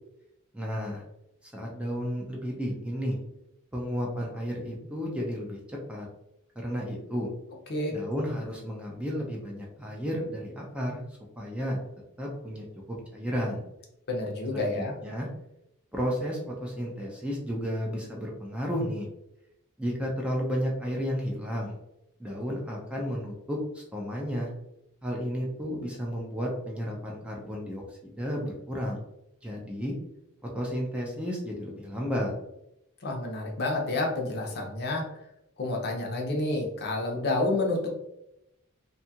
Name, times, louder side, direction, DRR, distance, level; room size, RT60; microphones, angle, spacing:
voice 1, 0.5-1.0 1.4-3.2 3.7-6.1 6.6-7.3 7.9-11.0 11.4-11.8 12.2-13.6 14.5-15.3 15.9-19.1 19.8-21.8 22.2-24.5 25.0-29.0 29.4-29.9 30.4-32.3, equal, 5° right, -2 dB, 0.4 m, -32 dB
voice 2, 7.7-8.0 14.1-14.9 33.0-35.2 35.6-37.9, left 2 dB, 50° left, 0 dB, 0.6 m, -29 dB
2.7 x 2.3 x 2.7 m, 0.85 s
head